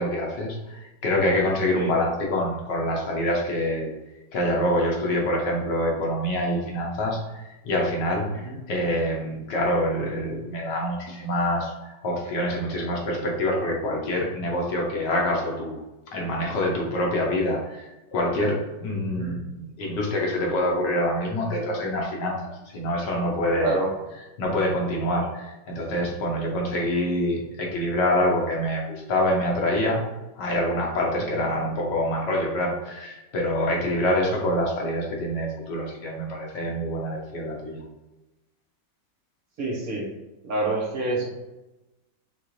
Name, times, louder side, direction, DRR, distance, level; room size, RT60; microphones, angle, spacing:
voice 1, 0.0-3.9 4.3-15.8 16.1-23.8 24.4-30.0 30.3-37.8, left 1 dB, 75° left, -1 dB, 1.7 m, -26 dB
voice 2, 8.2-8.6 19.0-19.4 23.6-23.9 31.3-31.5 39.6-40.0 40.4-41.3, right 2 dB, 60° right, -2 dB, 1.4 m, -28 dB
6.6 x 2.6 x 3.1 m, 1.0 s
omnidirectional pair, 1.9 m